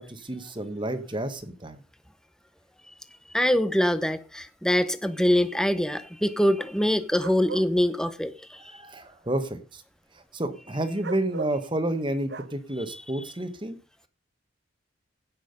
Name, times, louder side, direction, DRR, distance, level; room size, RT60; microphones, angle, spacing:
voice 1, 0.0-1.8 8.7-9.8 10.3-13.8, right 1 dB, 25° right, 9 dB, 1.2 m, -30 dB
voice 2, 3.3-8.8, left 1 dB, 5° left, 12 dB, 0.7 m, -24 dB
sound 1, 7.2-7.7 11.0-11.6 12.3-12.5, right 4 dB, 55° right, 0.8 m, -36 dB
16.0 x 6.3 x 5.2 m, 0.35 s
head